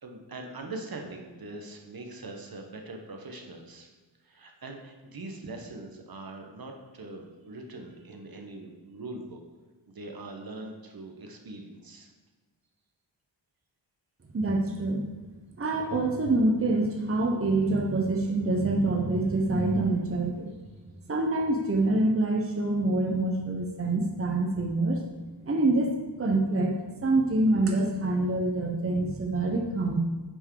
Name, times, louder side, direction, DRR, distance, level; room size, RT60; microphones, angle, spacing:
voice 1, 0.0-3.9 4.2-9.4 9.9-12.1, right 2 dB, 50° right, 3 dB, 1.2 m, -42 dB
voice 2, 14.3-15.1 15.6-20.5 21.1-25.0 25.5-25.9 26.2-26.7 27.0-30.0, right 2 dB, 30° right, 1 dB, 1.0 m, -26 dB
8.8 x 4.7 x 4.7 m, 1.3 s
cardioid pair, 70°, 45 cm